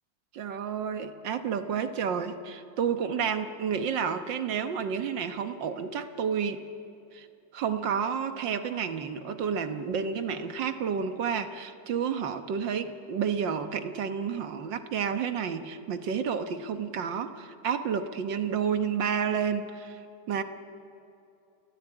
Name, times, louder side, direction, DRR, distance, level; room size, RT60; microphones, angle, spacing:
voice 1, 0.3-6.6 7.1-7.3 7.5-20.0 20.3-20.4, right 7 dB, 85° right, 9 dB, 1.9 m, -30 dB
29.5 x 14.0 x 9.9 m, 2.7 s
omnidirectional pair, 1.9 m